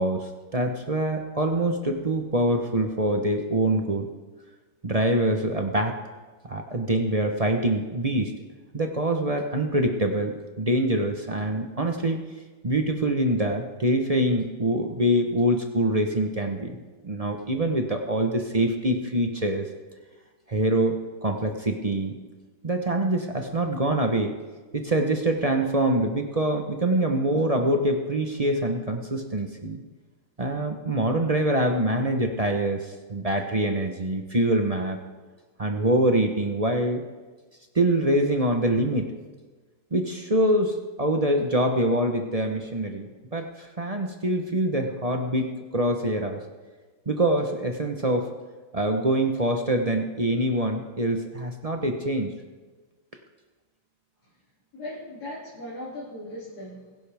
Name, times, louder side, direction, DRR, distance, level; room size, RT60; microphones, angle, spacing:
voice 1, 0.0-4.1 4.8-5.9 6.5-8.3 8.7-12.2 12.6-16.8 17.0-19.6 20.5-20.9 21.2-22.2 22.6-24.3 24.7-29.8 30.4-35.0 35.6-37.0 37.7-39.1 39.9-46.4 47.1-48.3 48.7-52.3, right 1 dB, 35° right, 3 dB, 0.6 m, -25 dB
voice 2, 54.7-57.0, left 1 dB, 50° left, -8 dB, 3.4 m, -38 dB
22.0 x 11.0 x 3.5 m, 1.3 s
omnidirectional pair, 2.2 m